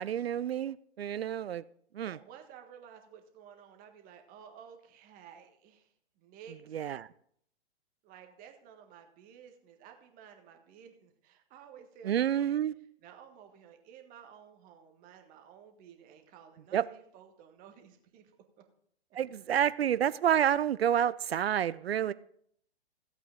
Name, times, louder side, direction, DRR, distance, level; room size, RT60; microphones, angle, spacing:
voice 1, 0.0-1.6 1.9-2.2 6.7-7.1 12.1-12.7 16.7-16.8 19.1-22.1, right 10 dB, 65° right, 0.5 m, -29 dB
voice 2, 2.0-6.9 8.0-18.3, right 8 dB, 25° right, 1.5 m, -54 dB
15.5 x 8.2 x 3.7 m
figure-of-eight pair, 115°, 33 cm